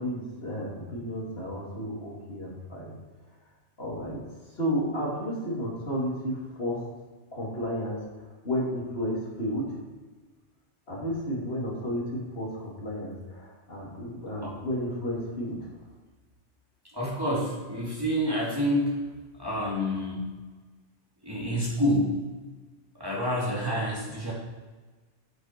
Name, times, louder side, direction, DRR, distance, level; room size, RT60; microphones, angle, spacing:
voice 1, 0.0-2.9 3.8-4.2 4.6-6.8 7.3-9.7 10.9-15.6, equal, 55° left, -5 dB, 3.1 m, -32 dB
voice 2, 16.9-18.9 19.4-20.2 21.2-22.2 22.9-24.3, equal, 20° right, -5 dB, 2.6 m, -28 dB
8.9 x 7.8 x 4.5 m, 1.3 s
omnidirectional pair, 1.2 m